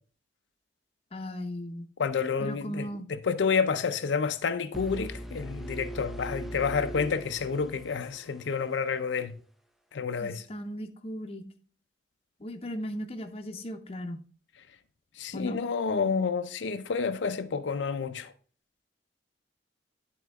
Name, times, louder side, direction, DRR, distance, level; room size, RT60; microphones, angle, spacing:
voice 1, 1.1-1.9 2.4-3.1 10.2-11.4 12.4-14.2 15.3-15.6, equal, 35° left, 0.7 m, -37 dB
voice 2, 2.0-9.4 9.9-10.4 15.2-18.3, left 5 dB, 85° left, 0.5 m, -29 dB
sound 1, 4.7-8.6, right 1 dB, ahead, 0.4 m, -40 dB
10.5 x 3.7 x 3.4 m
head